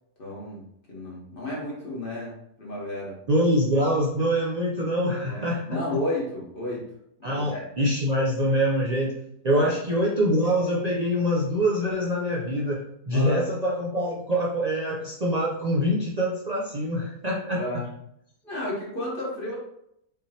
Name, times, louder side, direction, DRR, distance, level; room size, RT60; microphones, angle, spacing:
voice 1, 0.2-3.2 5.2-6.8 7.2-7.6 9.5-9.7 13.1-13.5 17.5-17.9 18.4-19.5, left 1 dB, 35° left, -5 dB, 1.5 m, -32 dB
voice 2, 3.3-5.8 7.2-9.2 9.4-12.8 13.1-17.6, equal, 85° right, -5 dB, 0.3 m, -24 dB
5.5 x 3.2 x 2.9 m, 0.76 s
omnidirectional pair, 1.7 m